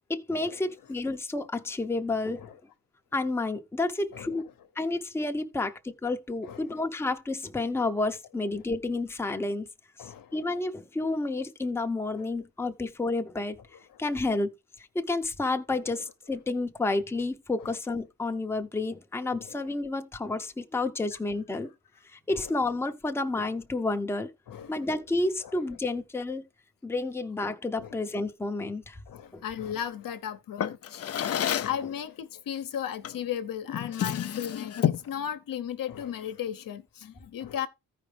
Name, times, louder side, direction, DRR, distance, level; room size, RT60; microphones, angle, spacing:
voice 1, 0.1-2.4 3.1-4.4 4.8-9.7 10.0-13.6 14.0-14.5 14.9-21.7 22.1-24.3 24.7-26.4 26.8-29.0 29.3-29.4, left 2 dB, 5° left, 0.7 m, -30 dB
voice 2, 4.1-4.4 6.4-6.7 10.0-10.4 12.1-12.3 13.9-14.0 15.8-16.0 17.6-17.7 19.3-19.6 22.3-22.5 24.5-24.9 25.4-25.6 27.8-28.0 29.1-31.0 31.3-37.7, left 9 dB, 70° left, 0.9 m, -36 dB
Drawer open or close, 30.6-31.8 33.0-33.3 33.7-35.2, left 10 dB, 45° left, 0.5 m, -29 dB
14.5 x 5.0 x 3.3 m
wide cardioid pair, 140°, 35 cm